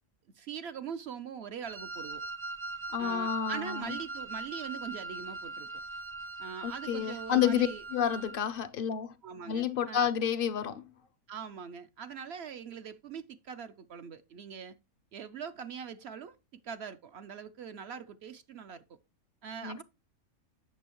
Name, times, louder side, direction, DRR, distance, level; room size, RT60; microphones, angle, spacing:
voice 1, 0.3-2.2 3.0-5.7 6.4-7.8 9.2-10.1 11.3-14.8 15.1-16.4 16.6-18.8 19.4-19.8, right 7 dB, 60° right, 0.7 m, -42 dB
Wind instrument woodwind instrument, 1.7-8.4, right 3 dB, 20° right, 0.3 m, -41 dB
voice 2, 2.9-4.0 6.6-9.1 9.5-10.9 19.6-19.8, left 8 dB, 60° left, 0.6 m, -30 dB
8.4 x 6.9 x 3.0 m
omnidirectional pair, 1.5 m